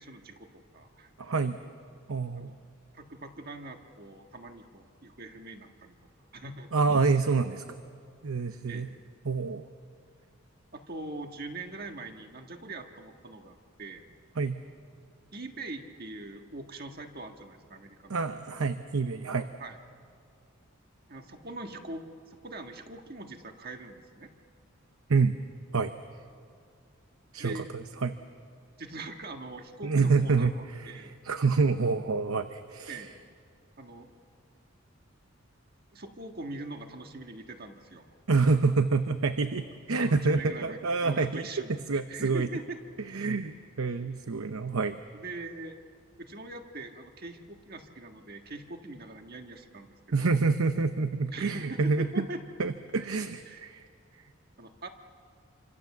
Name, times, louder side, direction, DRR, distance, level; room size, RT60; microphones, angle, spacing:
voice 1, 0.0-1.1 2.3-2.5 2.9-6.0 6.3-6.7 8.7-8.9 10.7-14.0 15.3-18.2 19.6-19.8 21.1-24.3 27.4-27.7 28.8-31.1 32.9-33.1 33.8-34.1 35.9-38.1 40.0-42.8 45.1-45.8 46.2-50.4 51.3-52.4 53.5-53.6 54.6-54.9, right 2 dB, 45° right, 5 dB, 1.6 m, -42 dB
voice 2, 1.2-1.6 2.1-2.5 6.7-7.6 8.2-8.9 9.2-9.7 14.4-14.6 18.1-19.5 25.1-25.4 25.7-25.9 27.3-28.2 29.8-33.0 38.3-42.5 43.1-45.0 50.1-52.3 52.6-53.9, right 4 dB, 85° right, 9 dB, 0.8 m, -27 dB
27.5 x 25.5 x 7.3 m, 2.2 s
head